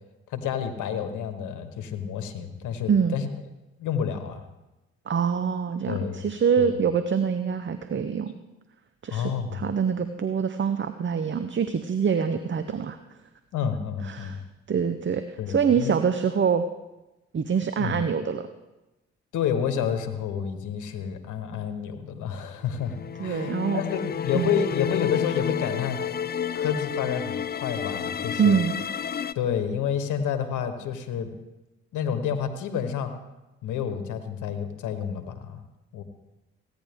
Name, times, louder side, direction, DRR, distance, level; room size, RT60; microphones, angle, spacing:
voice 1, 0.3-3.3 3.8-4.4 5.9-6.2 6.6-6.8 9.1-9.6 13.5-14.4 15.4-15.9 17.8-18.0 19.3-22.9 23.2-26.0 26.5-28.6 29.3-31.3 31.9-33.1 33.6-35.6 35.9-36.0, left 8 dB, 80° left, 8 dB, 1.2 m, -29 dB
voice 2, 5.1-8.3 9.0-13.0 14.0-14.4 14.7-16.6 17.3-18.5 23.2-23.8 24.3-24.6 28.4-28.8, right 6 dB, 40° right, 10 dB, 0.7 m, -25 dB
sound 1, 22.7-29.3, left 8 dB, 30° left, 0.5 m, -30 dB
16.0 x 10.0 x 3.5 m, 1.0 s
supercardioid pair, 50°, 30 cm